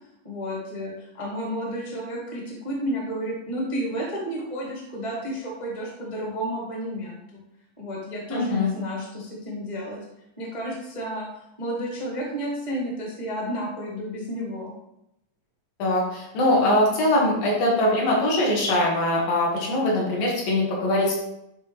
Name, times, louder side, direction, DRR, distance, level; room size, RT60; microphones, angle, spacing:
voice 1, 0.2-7.4 7.8-10.0 10.4-11.2 11.6-14.7, equal, 20° left, -4 dB, 0.9 m, -31 dB
voice 2, 8.3-8.7 15.8-21.1, left 1 dB, 80° left, -3 dB, 3.3 m, -22 dB
10.5 x 3.6 x 3.2 m, 0.85 s
omnidirectional pair, 4.1 m